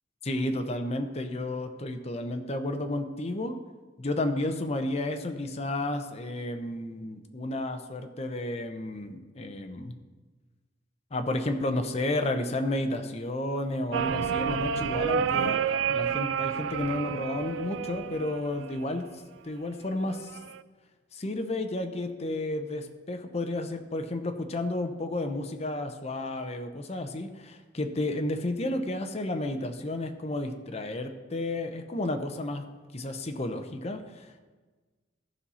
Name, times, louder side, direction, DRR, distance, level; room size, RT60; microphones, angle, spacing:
voice 1, 0.2-3.6 4.0-9.9 11.1-19.1 19.4-20.4 21.1-32.6 32.9-34.4, left 1 dB, 35° left, 6 dB, 0.7 m, -32 dB
sound 1, 13.9-19.0 20.1-20.6, right 7 dB, 85° right, 0.3 m, -30 dB
14.0 x 5.6 x 4.2 m, 1.3 s
head